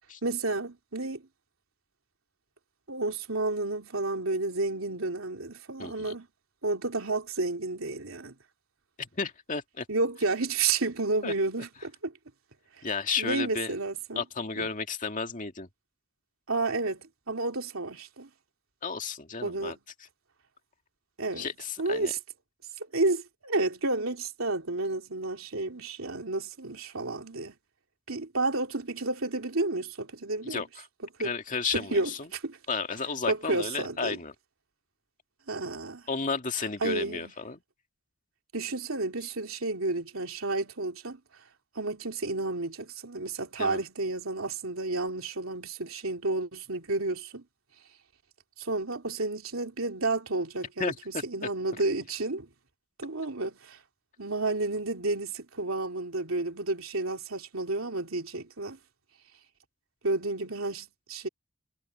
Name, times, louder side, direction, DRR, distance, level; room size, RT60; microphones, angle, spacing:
voice 1, 0.2-1.2 2.9-6.3 6.6-8.3 9.9-12.1 13.2-14.2 14.6-14.7 16.5-18.3 19.4-19.8 21.2-21.5 21.8-22.2 22.9-27.5 28.1-30.7 31.2-31.3 31.7-32.6 33.3-34.2 35.5-36.0 36.8-37.3 38.5-41.2 41.7-47.4 48.6-50.9 51.2-52.5 53.0-53.8 54.2-58.8 60.0-61.3, right 2 dB, 85° right, 3.0 m, -31 dB
voice 2, 5.8-6.2 9.0-9.9 11.2-11.3 12.8-13.7 14.2-15.7 18.8-19.8 21.4-22.1 30.5-30.9 31.2-32.3 32.7-34.3 36.1-37.6 43.6-43.8 50.8-51.5, left 5 dB, 40° left, 2.1 m, -33 dB
head